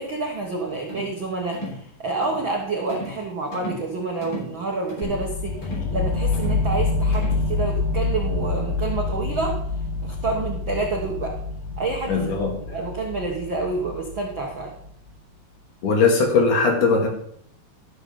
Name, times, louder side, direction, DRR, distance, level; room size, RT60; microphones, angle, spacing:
voice 1, 0.0-9.6 10.0-11.3 11.8-12.3 12.7-14.7, right 3 dB, 75° right, -1 dB, 1.1 m, -28 dB
sound 1, 0.9-1.2 1.5-1.8 2.2-2.5 2.9-3.2 3.5-3.9 4.2-4.5 4.9-5.2 5.6-5.9 6.3-6.7 7.1-7.5, equal, 25° left, 3.7 m, -35 dB
sound 2, 5.0-14.8, left 3 dB, 85° left, 3.8 m, -27 dB
voice 2, 12.1-12.6 15.8-17.1, left 4 dB, 55° left, 0 dB, 3.0 m, -19 dB
13.0 x 6.6 x 5.1 m, 0.69 s
omnidirectional pair, 4.7 m